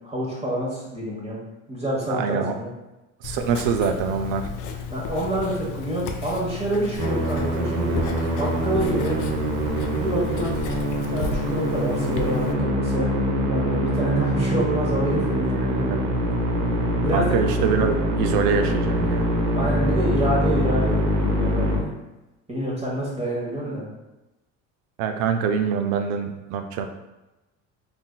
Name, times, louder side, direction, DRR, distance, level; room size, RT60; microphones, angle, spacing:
voice 1, 0.0-1.4 1.7-2.7 4.9-8.0 8.3-9.2 10.0-10.5 10.9-13.1 13.4-15.9 17.0-17.4 19.5-21.9 22.5-23.9, right 1 dB, 15° right, -6 dB, 1.2 m, -27 dB
voice 2, 2.1-2.6 3.2-4.4 15.9-16.0 17.1-19.3 25.0-26.9, right 6 dB, 75° right, 5 dB, 0.5 m, -24 dB
Writing, 3.2-12.5, left 5 dB, 60° left, 0.5 m, -33 dB
Musical instrument, 7.0-21.8, equal, 50° right, 0.8 m, -24 dB
3.7 x 2.6 x 2.2 m, 1.0 s
supercardioid pair, 90°, 35 cm